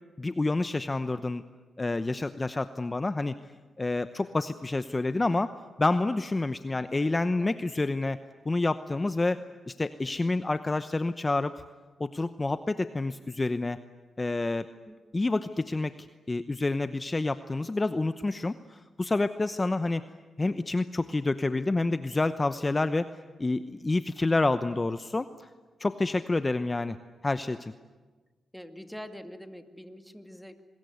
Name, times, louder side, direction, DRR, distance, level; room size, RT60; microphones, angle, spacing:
voice 1, 0.2-1.4 1.8-3.4 3.8-8.2 8.4-9.4 9.7-11.5 12.0-13.8 14.2-14.7 15.1-15.9 16.3-20.0 20.4-23.1 23.4-25.3 25.8-27.0 27.2-27.7, left 2 dB, 25° left, 11 dB, 0.9 m, -28 dB
voice 2, 28.5-30.6, equal, ahead, 7 dB, 2.3 m, -44 dB
25.5 x 21.5 x 9.5 m, 1.3 s
cardioid pair, 65°, 0 cm